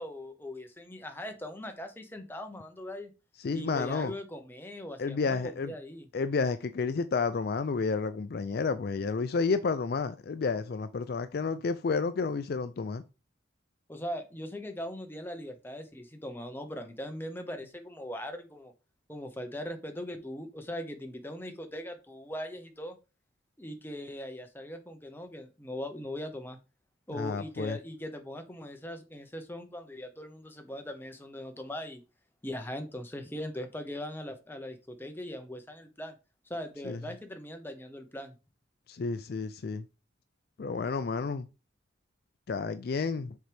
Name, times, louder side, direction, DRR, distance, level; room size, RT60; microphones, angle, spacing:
voice 1, 0.0-3.1 3.5-6.1 13.9-18.7 19.1-23.0 23.6-26.6 27.1-32.0 32.4-36.2 36.5-38.4, left 1 dB, 10° left, 0.8 m, -40 dB
voice 2, 3.4-4.1 5.0-5.7 6.1-13.0 27.1-27.8 36.8-37.0 38.9-39.8 40.6-41.5 42.5-43.4, left 4 dB, 50° left, 0.4 m, -31 dB
6.5 x 4.5 x 3.4 m
head